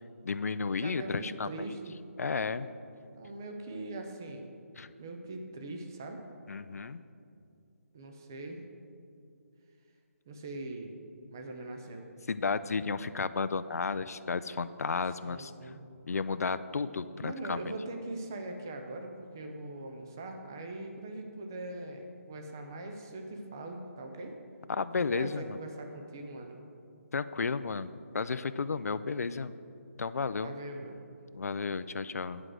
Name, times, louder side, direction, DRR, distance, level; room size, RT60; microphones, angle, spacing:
voice 1, 0.2-1.5 2.2-2.7 4.8-4.9 6.5-7.0 12.3-15.5 16.1-17.7 24.7-25.6 27.1-29.5 30.0-30.5 31.3-32.4, left 4 dB, 85° left, 13 dB, 0.4 m, -33 dB
voice 2, 0.8-1.9 3.1-4.5 5.0-6.2 7.9-8.6 10.3-11.0 11.3-12.1 15.2-15.8 17.2-24.4 25.0-26.6 30.4-31.0, right 2 dB, 15° right, 4 dB, 0.4 m, -41 dB
10.0 x 4.8 x 7.7 m, 2.5 s
hypercardioid pair, 180°, 8 cm